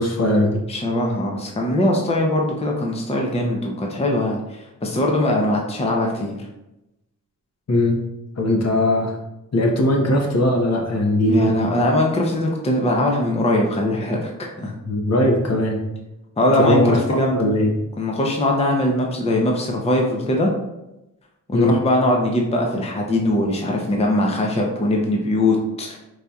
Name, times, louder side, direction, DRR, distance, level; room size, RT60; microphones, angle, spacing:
voice 1, 0.0-0.6 7.7-8.0 8.4-9.2 9.5-11.6 14.9-15.8 16.6-17.7 21.5-21.8, left 1 dB, 50° left, 0 dB, 0.8 m, -19 dB
voice 2, 0.7-6.5 11.3-14.3 14.6-14.8 16.4-17.4 18.0-20.5 21.5-26.0, left 1 dB, 20° left, 0 dB, 0.6 m, -21 dB
4.7 x 2.7 x 2.3 m, 0.94 s
cardioid pair, 70°, 34 cm